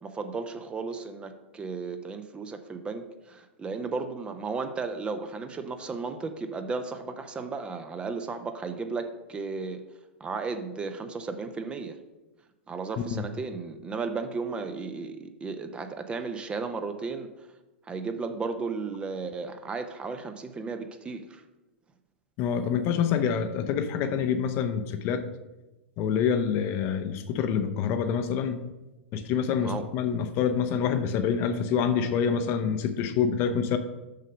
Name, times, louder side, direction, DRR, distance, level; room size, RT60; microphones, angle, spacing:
voice 1, 0.0-9.8 10.2-12.0 12.7-17.5 17.9-21.4 29.6-29.9, right 4 dB, 15° right, 8 dB, 0.6 m, -34 dB
voice 2, 22.4-25.2 26.0-28.6 29.1-33.8, left 7 dB, 35° left, 9 dB, 0.7 m, -26 dB
6.6 x 6.5 x 5.2 m, 1.1 s
figure-of-eight pair, 100°, 6 cm